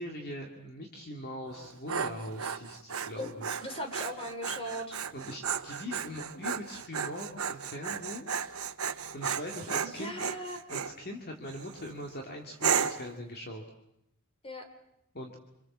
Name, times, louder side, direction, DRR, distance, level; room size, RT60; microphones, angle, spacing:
voice 1, 0.0-3.5 5.1-8.3 9.1-10.1 10.7-13.6 15.1-15.4, left 1 dB, 45° left, 2 dB, 2.4 m, -41 dB
Dog, 1.5-10.9 11.5-11.9 12.6-13.1, right 7 dB, 75° right, 1.1 m, -34 dB
voice 2, 3.6-5.0 9.8-10.6 14.4-14.7, equal, 25° left, 6 dB, 3.7 m, -38 dB
27.5 x 23.0 x 7.4 m, 0.83 s
head